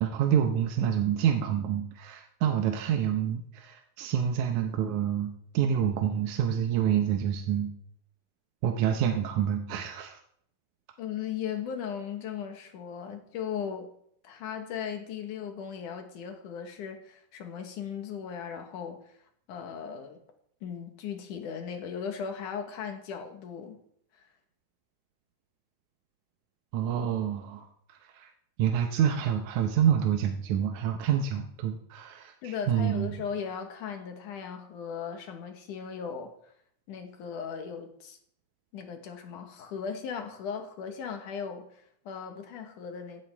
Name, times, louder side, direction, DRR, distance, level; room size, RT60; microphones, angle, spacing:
voice 1, 0.0-7.7 8.6-10.2 26.7-28.3 28.6-33.1, right 9 dB, 75° right, 4 dB, 2.1 m, -27 dB
voice 2, 11.0-13.9 14.2-19.0 19.5-20.2 20.6-23.8 24.1-24.3 32.4-36.3 36.9-38.2 38.7-43.2, left 7 dB, 75° left, 5 dB, 2.8 m, -37 dB
16.0 x 11.0 x 3.4 m, 0.67 s
omnidirectional pair, 3.7 m